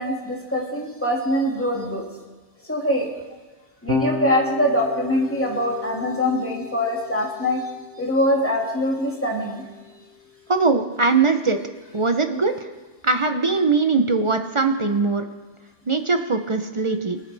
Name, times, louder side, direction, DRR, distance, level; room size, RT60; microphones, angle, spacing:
voice 1, 0.0-2.0 2.7-3.1 3.8-7.6 8.0-9.6, equal, 10° left, -2 dB, 2.0 m, -23 dB
Electric guitar / Bass guitar, 3.9-10.3, left 4 dB, 70° right, 1.5 m, -33 dB
voice 2, 10.5-11.6 11.9-12.5 13.0-15.3 15.9-17.2, right 4 dB, 35° right, 7 dB, 0.5 m, -21 dB
22.0 x 8.3 x 3.4 m, 1.3 s
omnidirectional pair, 1.2 m